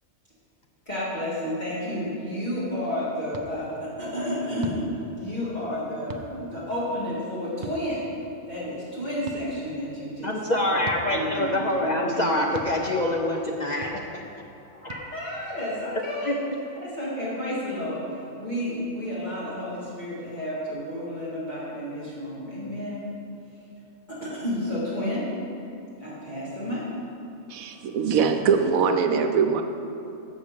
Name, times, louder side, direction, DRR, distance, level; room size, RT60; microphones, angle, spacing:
voice 1, 0.9-8.0 8.5-10.4 10.6-12.5 14.7-16.4 16.8-23.0 24.1-25.3 26.0-26.9, equal, 35° left, -10 dB, 2.0 m, -31 dB
sound 1, 3.3-3.5 4.6-4.8 6.1-6.3 7.6-7.8 9.3-9.4 10.8-11.0 12.5-12.7 13.8-14.0 14.9-15.0, right 4 dB, 70° right, 0.4 m, -37 dB
voice 2, 10.2-14.2 16.2-16.4, left 1 dB, 50° left, 0 dB, 0.5 m, -25 dB
voice 3, 27.5-29.6, right 6 dB, 85° right, 6 dB, 1.1 m, -22 dB
6.6 x 6.2 x 7.4 m, 2.8 s
omnidirectional pair, 1.4 m